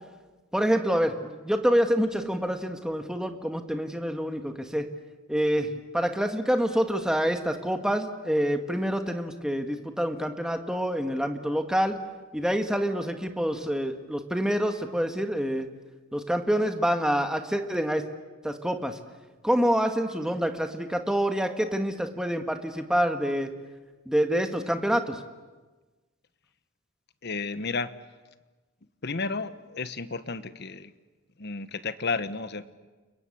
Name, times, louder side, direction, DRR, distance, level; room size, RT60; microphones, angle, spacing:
voice 1, 0.5-4.8 5.3-12.0 12.3-15.7 16.1-18.0 18.4-19.0 19.4-23.5 24.0-25.2, equal, 5° right, 6 dB, 1.6 m, -27 dB
voice 2, 27.2-27.9 29.0-30.9 31.4-32.7, left 4 dB, 50° left, 12 dB, 1.1 m, -32 dB
30.0 x 22.5 x 8.5 m, 1.3 s
head